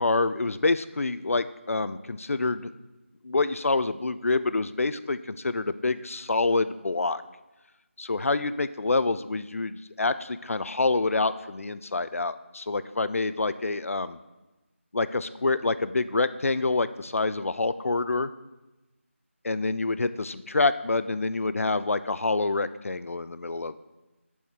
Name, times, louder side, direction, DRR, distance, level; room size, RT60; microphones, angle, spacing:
voice 1, 0.0-2.7 3.2-7.2 8.0-14.2 14.9-18.3 19.4-23.8, left 3 dB, 85° left, 13 dB, 0.4 m, -27 dB
10.5 x 4.2 x 3.6 m, 1.1 s
figure-of-eight pair, 170°, 7 cm